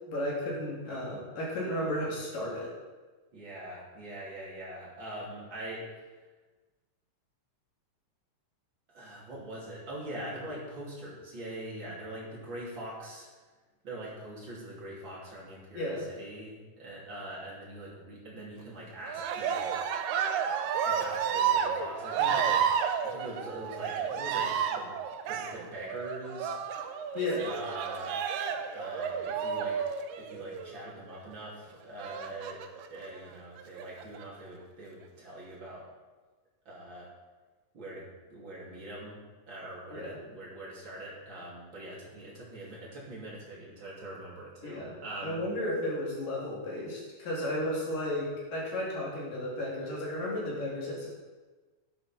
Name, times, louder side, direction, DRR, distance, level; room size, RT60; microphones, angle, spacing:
voice 1, 0.1-2.7 15.7-16.0 27.1-27.5 39.9-40.2 44.6-45.0 45.2-51.1, left 1 dB, 75° left, -5 dB, 4.8 m, -33 dB
voice 2, 3.3-6.0 8.9-13.3 13.8-19.8 20.9-22.7 23.0-24.9 25.3-26.6 27.4-28.1 28.7-29.9 30.2-32.6 32.9-35.8 36.7-37.1 37.7-39.2 39.5-45.4, right 1 dB, 35° right, -5 dB, 3.6 m, -43 dB
Cheering, 19.0-30.7 32.0-32.9 33.6-34.2, right 7 dB, 80° right, 2.4 m, -31 dB
11.5 x 11.0 x 4.5 m, 1.3 s
omnidirectional pair, 3.9 m